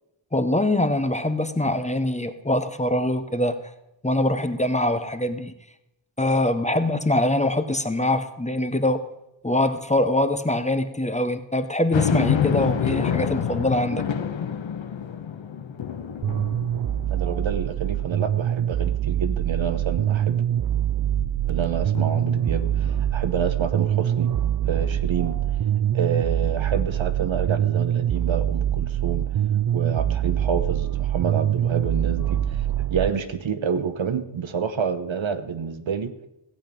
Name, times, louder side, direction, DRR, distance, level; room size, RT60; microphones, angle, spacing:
voice 1, 0.3-3.6 4.0-5.5 6.2-9.0 9.4-14.0, left 1 dB, 15° left, 9 dB, 0.7 m, -23 dB
sound 1, 11.9-17.5 18.0-18.1 21.9-23.0, left 8 dB, 75° left, 0.8 m, -27 dB
sound 2, 16.2-33.1, right 11 dB, 50° right, 0.4 m, -24 dB
voice 2, 17.1-20.4 21.5-24.3 24.6-25.4 25.9-29.3 29.7-36.1, right 6 dB, 80° right, 10 dB, 1.0 m, -28 dB
16.0 x 8.1 x 5.2 m, 0.86 s
wide cardioid pair, 105°, 46 cm